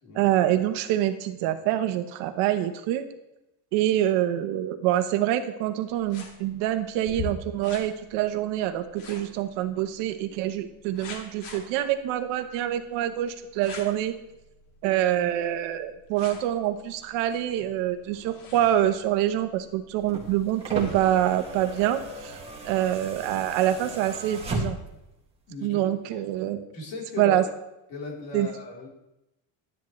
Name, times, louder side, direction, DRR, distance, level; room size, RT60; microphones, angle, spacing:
voice 1, 0.1-3.1 3.7-14.1 14.8-22.4 22.6-24.8 25.6-26.6 27.2-27.4 28.3-28.5, right 12 dB, 90° right, 9 dB, 1.1 m, -26 dB
sound 1, 5.9-23.6, left 4 dB, 90° left, 2.6 m, -46 dB
sound 2, 19.9-25.1 26.3-26.4, right 2 dB, 15° right, 1.9 m, -36 dB
voice 2, 25.5-25.8 26.1-26.2 26.7-27.4 27.9-28.9, left 3 dB, 60° left, -3 dB, 3.7 m, -37 dB
12.0 x 10.0 x 3.2 m, 0.91 s
cardioid pair, 155°, 42 cm